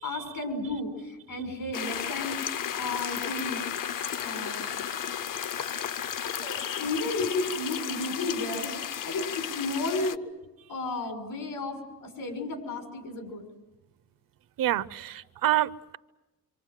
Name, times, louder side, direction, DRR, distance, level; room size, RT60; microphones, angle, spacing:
voice 1, 0.0-2.4 2.8-3.6 4.2-4.7 6.2-10.2 10.7-13.5, left 2 dB, 85° left, 5 dB, 6.4 m, -33 dB
sound 1, 1.7-10.2, left 9 dB, 70° left, 0.8 m, -34 dB
voice 2, 14.6-16.0, right 14 dB, 75° right, 16 dB, 0.8 m, -27 dB
26.5 x 26.0 x 7.6 m, 1.0 s
cardioid pair, 110°, 34 cm